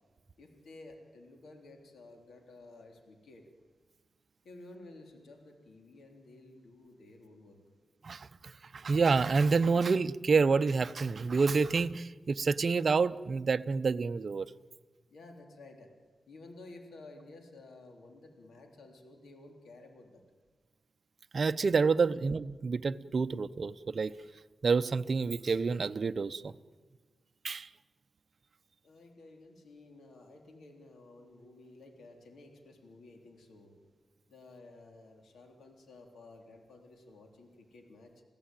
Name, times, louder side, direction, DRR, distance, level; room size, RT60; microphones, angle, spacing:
voice 1, 0.4-3.4 4.4-7.6 15.1-15.9 16.3-20.2 22.0-22.1 28.8-33.7 34.3-38.1, left 2 dB, 85° left, 3 dB, 3.4 m, -53 dB
voice 2, 8.0-14.5 21.3-24.1 24.6-26.5 27.4-27.7, right 4 dB, 55° right, 12 dB, 0.8 m, -28 dB
28.5 x 16.5 x 9.1 m, 1.4 s
cardioid pair, 80°, 0 cm